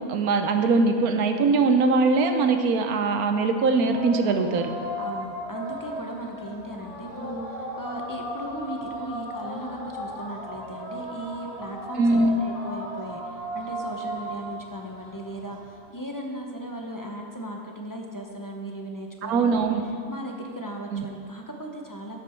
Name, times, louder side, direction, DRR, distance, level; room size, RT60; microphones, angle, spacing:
voice 1, 0.1-4.7 12.0-12.4 19.2-19.8 20.9-21.1, right 3 dB, 85° right, 6 dB, 1.3 m, -21 dB
sound 1, 3.7-15.8, equal, 70° left, 2.9 m, -36 dB
voice 2, 5.0-13.2 13.5-19.7 20.1-22.2, right 1 dB, 15° left, 0 dB, 0.8 m, -37 dB
12.0 x 8.0 x 4.5 m, 2.5 s
omnidirectional pair, 1.5 m